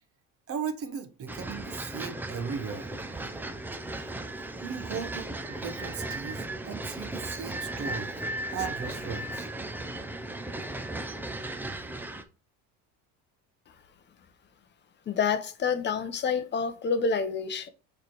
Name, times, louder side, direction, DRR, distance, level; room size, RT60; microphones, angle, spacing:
voice 1, 0.5-2.9 4.6-8.1 8.5-9.5, right 6 dB, 35° right, 0.9 m, -37 dB
sound 1, 1.3-12.2, right 2 dB, 5° right, 0.3 m, -36 dB
voice 2, 15.1-17.7, left 5 dB, 30° left, 0.7 m, -28 dB
6.5 x 3.3 x 4.5 m
cardioid pair, 155°, 39 cm